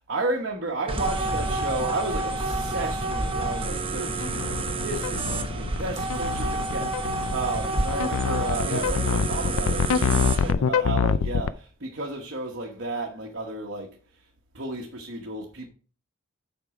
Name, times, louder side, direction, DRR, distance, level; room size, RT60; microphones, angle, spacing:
voice 1, 0.1-14.0 14.5-15.7, right 2 dB, 55° right, 1.1 m, -33 dB
sound 1, 0.9-10.5, right 2 dB, 25° right, 0.8 m, -29 dB
sound 2, 1.9-11.5, left 6 dB, 80° left, 0.4 m, -26 dB
8.2 x 5.3 x 4.8 m
head